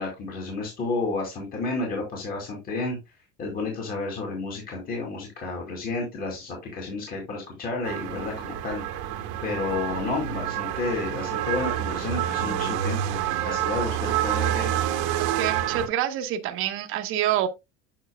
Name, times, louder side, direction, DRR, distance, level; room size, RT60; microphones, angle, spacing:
voice 1, 0.0-3.0 3.4-13.2 13.4-14.8, left 3 dB, 30° left, 2.5 m, -31 dB
sound 1, 7.8-15.9, right 11 dB, 80° right, 1.3 m, -28 dB
voice 2, 15.3-17.5, right 11 dB, 45° right, 0.9 m, -26 dB
9.0 x 6.0 x 2.2 m
cardioid pair, 165°, 29 cm